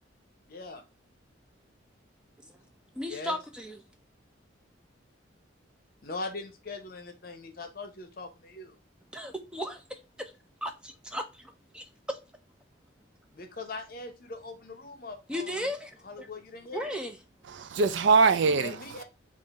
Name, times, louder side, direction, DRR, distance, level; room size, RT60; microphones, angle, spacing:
voice 1, 0.5-0.8 3.0-3.4 6.0-8.8 13.3-15.6 16.0-17.0 18.6-19.0, left 3 dB, 50° left, 0.7 m, -41 dB
voice 2, 3.0-3.8 9.1-10.3 10.6-12.2 15.3-16.3 16.7-17.2, equal, 5° right, 0.4 m, -36 dB
voice 3, 17.4-19.0, right 4 dB, 65° right, 0.4 m, -23 dB
3.7 x 2.5 x 4.0 m
head